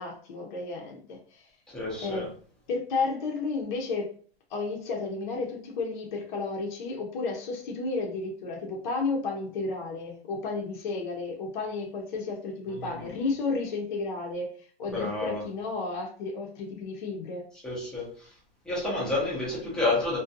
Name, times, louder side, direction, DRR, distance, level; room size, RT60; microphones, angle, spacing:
voice 1, 0.0-1.5 2.0-2.3 2.7-4.1 4.5-14.5 14.8-17.5, left 3 dB, 50° left, 0 dB, 0.6 m, -32 dB
voice 2, 1.7-2.3 12.8-13.1 14.9-15.4 17.6-18.1 18.7-20.2, left 2 dB, 5° left, -6 dB, 0.5 m, -29 dB
2.5 x 2.2 x 2.5 m, 0.43 s
hypercardioid pair, 155°, 31 cm